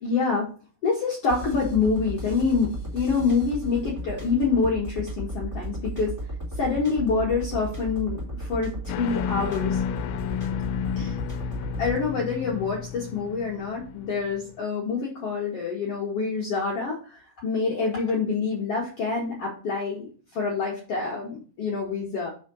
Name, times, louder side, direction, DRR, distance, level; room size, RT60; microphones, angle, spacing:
voice 1, 0.0-0.5 0.8-6.1 6.6-9.8 10.9-11.2 11.8-22.3, left 4 dB, 65° left, -4 dB, 1.5 m, -26 dB
sound 1, 1.3-12.0, right 1 dB, 10° right, 1.1 m, -35 dB
sound 2, 8.9-14.4, left 9 dB, 80° left, 2.5 m, -31 dB
5.7 x 4.1 x 6.2 m, 0.39 s
omnidirectional pair, 4.8 m